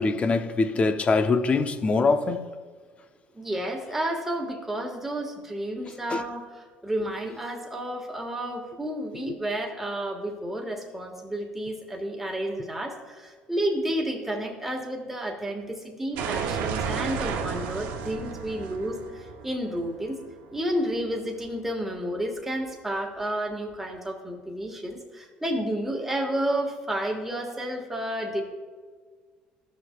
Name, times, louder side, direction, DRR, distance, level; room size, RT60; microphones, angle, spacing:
voice 1, 0.0-2.4 6.1-6.2, left 3 dB, 35° left, 0.6 m, -23 dB
voice 2, 3.3-20.2 20.5-28.4, right 1 dB, 10° right, 1.5 m, -31 dB
sound 1, 16.2-20.9, right 6 dB, 80° right, 0.7 m, -33 dB
13.5 x 6.3 x 2.3 m
supercardioid pair, 85°, 4 cm